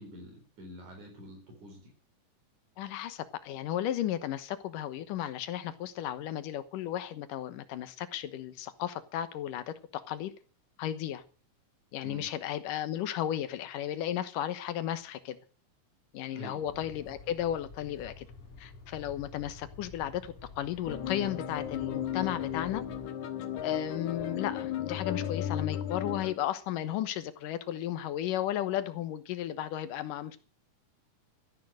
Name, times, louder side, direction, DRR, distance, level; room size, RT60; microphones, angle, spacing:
voice 1, 0.0-1.9 12.0-12.3 16.3-16.8 24.0-24.1, equal, 65° right, 5.7 m, -47 dB
voice 2, 2.8-9.7 10.1-10.3 10.8-11.2 11.9-15.4 16.1-18.3 18.6-22.8 23.6-30.4, left 11 dB, 85° left, 2.8 m, -34 dB
sound 1, 16.7-23.1, left 3 dB, 45° left, 4.0 m, -50 dB
sound 2, 20.9-26.4, left 9 dB, 65° left, 2.7 m, -35 dB
14.5 x 10.5 x 6.4 m
omnidirectional pair, 3.7 m